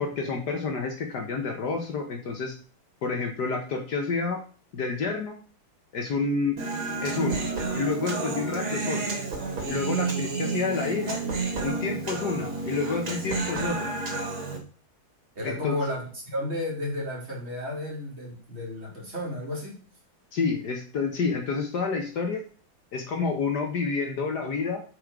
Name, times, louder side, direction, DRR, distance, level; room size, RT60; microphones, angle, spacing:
voice 1, 0.0-2.5 3.0-4.4 4.7-5.4 5.9-6.6 7.0-7.5 7.7-9.2 9.7-11.2 11.6-13.9 15.4-15.8 20.3-22.4 22.9-24.8, left 4 dB, 60° left, 3 dB, 1.5 m, -29 dB
Human voice, 6.6-14.6, right 4 dB, 85° right, 2.9 m, -30 dB
voice 2, 15.4-19.8, left 1 dB, 30° right, -4 dB, 2.8 m, -32 dB
7.5 x 5.0 x 4.8 m, 0.40 s
omnidirectional pair, 2.2 m